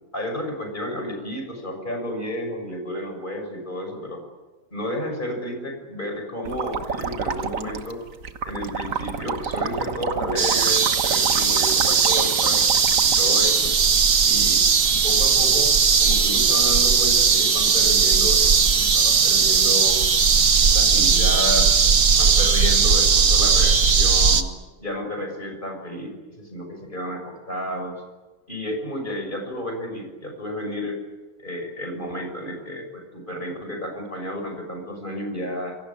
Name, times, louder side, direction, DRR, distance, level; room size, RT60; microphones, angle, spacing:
voice 1, 0.1-4.2 4.7-8.0 8.4-12.7 13.0-13.8 14.2-15.7 16.0-20.0 20.6-21.7 22.1-24.5 24.8-28.0 28.5-31.0 31.4-35.8, left 1 dB, 35° left, 4 dB, 6.6 m, -31 dB
sound 1, 6.4-13.2, right 5 dB, 65° right, 1.7 m, -30 dB
sound 2, 10.4-24.4, right 5 dB, 85° right, 2.1 m, -18 dB
27.0 x 24.0 x 8.8 m, 1.2 s
omnidirectional pair, 1.5 m